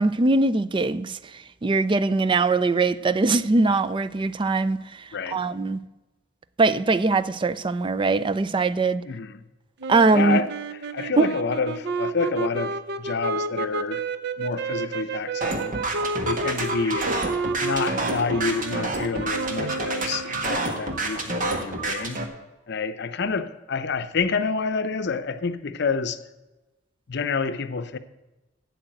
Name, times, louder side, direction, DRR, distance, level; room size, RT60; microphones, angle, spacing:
voice 1, 0.0-5.8 6.6-9.0 9.9-10.4 11.2-11.3, right 3 dB, 25° right, 0.4 m, -22 dB
voice 2, 5.1-5.4 9.0-9.4 10.1-10.5 10.9-14.1 14.4-15.8 16.2-17.1 17.6-22.2 22.7-26.2 27.1-28.0, left 4 dB, 60° left, 0.7 m, -28 dB
sound 1, 9.8-20.6, right 3 dB, 60° right, 0.7 m, -31 dB
sound 2, 15.4-22.2, right 2 dB, 45° right, 1.5 m, -28 dB
8.8 x 7.9 x 7.7 m
head